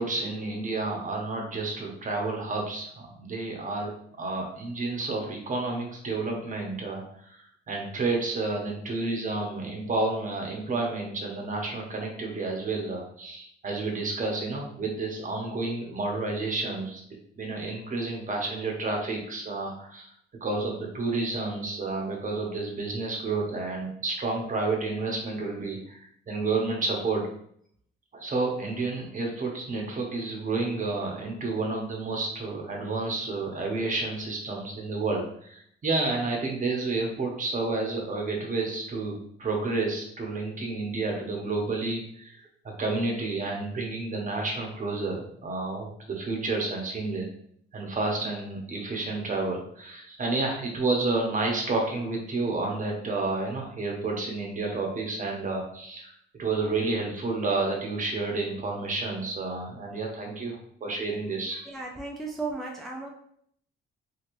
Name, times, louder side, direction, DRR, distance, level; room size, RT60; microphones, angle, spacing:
voice 1, 0.0-3.9 4.2-17.0 17.4-20.1 20.4-27.2 28.1-42.4 42.8-47.3 47.7-56.1 56.4-61.7, right 3 dB, 40° right, 0 dB, 0.9 m, -30 dB
voice 2, 61.7-63.1, right 3 dB, ahead, -1 dB, 0.4 m, -35 dB
3.0 x 2.8 x 2.6 m, 0.65 s
cardioid pair, 90°, 20 cm